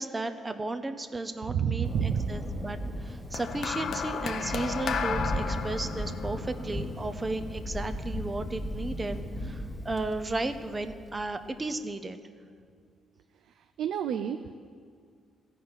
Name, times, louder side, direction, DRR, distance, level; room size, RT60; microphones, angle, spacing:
voice 1, 0.0-12.2, right 2 dB, 20° right, 8 dB, 0.6 m, -34 dB
voice 2, 1.5-2.3 13.8-14.6, right 8 dB, 80° right, 8 dB, 0.4 m, -29 dB
Thunder, 1.8-11.5, equal, 15° left, 1.7 m, -37 dB
sound 1, 3.3-7.8 8.7-8.9, left 6 dB, 65° left, 0.7 m, -34 dB
14.0 x 5.7 x 8.7 m, 2.1 s
cardioid pair, 90°, 0 cm